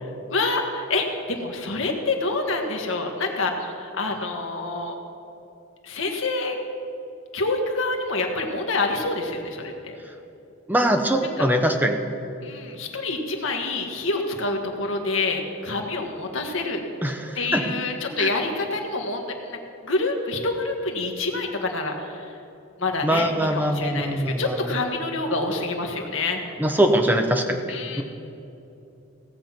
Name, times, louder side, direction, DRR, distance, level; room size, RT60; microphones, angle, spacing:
voice 1, 0.0-4.9 5.8-6.6 7.3-10.0 11.4-11.5 12.4-16.8 17.3-22.3 22.8-26.4 27.7-28.0, left 3 dB, 65° left, 2 dB, 1.5 m, -27 dB
voice 2, 10.7-12.0 17.0-17.6 18.2-18.3 23.0-24.6 26.6-28.0, right 1 dB, 10° right, 4 dB, 0.8 m, -22 dB
17.0 x 7.4 x 5.9 m, 2.8 s
head